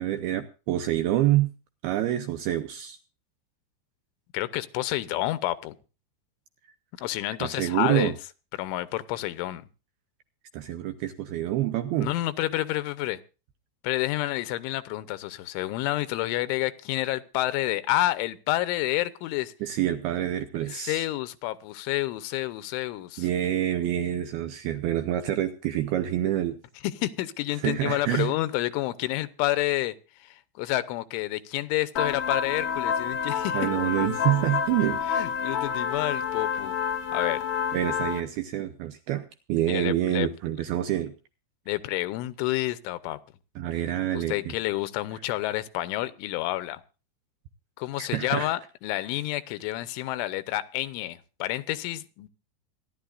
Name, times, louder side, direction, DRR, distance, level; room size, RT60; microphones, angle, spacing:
voice 1, 0.0-1.5 1.8-3.0 7.4-8.1 10.5-12.1 19.6-21.0 23.2-26.6 27.6-28.3 33.5-35.0 37.7-41.1 43.6-44.5 48.0-48.5, right 13 dB, 80° right, 2.3 m, -27 dB
voice 2, 4.3-5.7 7.0-8.1 8.6-9.6 12.0-13.2 13.8-19.5 20.6-23.3 26.8-30.0 30.2-33.6 35.1-36.8 37.1-37.4 39.7-40.3 41.7-43.2 44.1-46.8 47.8-52.3, left 16 dB, 90° left, 3.3 m, -29 dB
sound 1, 32.0-38.2, left 7 dB, 65° left, 2.0 m, -28 dB
27.0 x 11.5 x 2.5 m
omnidirectional pair, 5.4 m